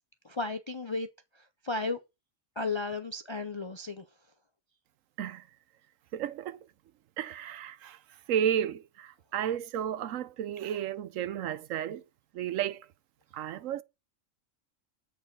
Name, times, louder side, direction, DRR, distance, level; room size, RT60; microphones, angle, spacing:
voice 1, 0.2-1.1 1.6-2.0 2.6-4.0, left 3 dB, 45° left, 0.3 m, -33 dB
voice 2, 6.1-6.6 7.2-8.0 8.3-12.0 12.3-12.9 13.3-13.8, right 9 dB, 80° right, 1.0 m, -32 dB
8.2 x 4.6 x 5.2 m
omnidirectional pair, 1.3 m